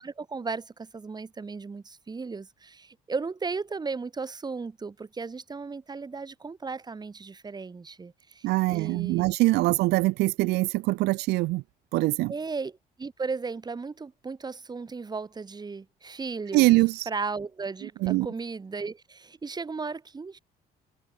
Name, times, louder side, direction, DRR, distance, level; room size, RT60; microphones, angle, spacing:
voice 1, 0.0-9.3 12.3-12.7 13.0-16.8 17.1-20.4, right 4 dB, 25° right, 3.7 m, -35 dB
voice 2, 8.4-11.6 11.9-12.3 16.5-17.1 18.0-18.3, right 20 dB, 80° right, 0.5 m, -23 dB
cardioid pair, 110°, 17 cm